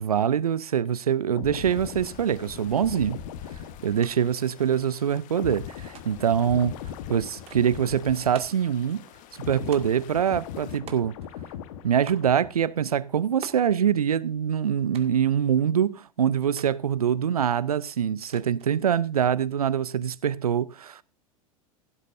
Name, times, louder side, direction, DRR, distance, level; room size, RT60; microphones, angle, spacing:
voice 1, 0.0-3.2 3.8-6.8 7.1-9.0 9.4-11.1 11.8-21.0, right 8 dB, 85° right, 0.5 m, -24 dB
sound 1, 1.3-8.8 9.1-12.8 13.1-13.4, left 9 dB, 60° left, 1.3 m, -40 dB
sound 2, 1.6-10.8, left 12 dB, 45° left, 1.2 m, -52 dB
sound 3, 4.0-4.1 4.4-5.2 5.9-6.4 7.5-7.8 8.3-8.7 9.7-10.1 10.9-11.4 12.1-12.4 13.4-13.7 14.9-15.3 16.6-16.8 18.3-18.7, right 8 dB, 30° right, 2.0 m, -45 dB
16.5 x 12.0 x 2.6 m
figure-of-eight pair, 85°, 19 cm